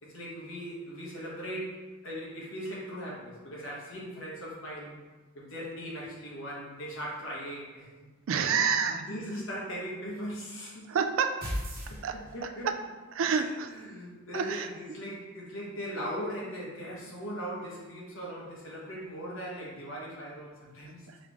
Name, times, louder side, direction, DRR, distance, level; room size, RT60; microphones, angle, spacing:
voice 1, 0.0-4.9 5.3-8.1 8.4-8.6 8.9-10.9 11.9-12.7 13.3-13.4 13.7-21.1, equal, 60° left, -5 dB, 1.4 m, -39 dB
voice 2, 8.3-9.0 10.9-11.6 12.0-12.8 13.1-13.7 14.3-14.7 21.1-21.2, right 6 dB, 65° right, 7 dB, 0.3 m, -29 dB
sound 1, 11.4-12.7, equal, 40° right, 1.0 m, -35 dB
4.8 x 3.0 x 3.6 m, 1.3 s
head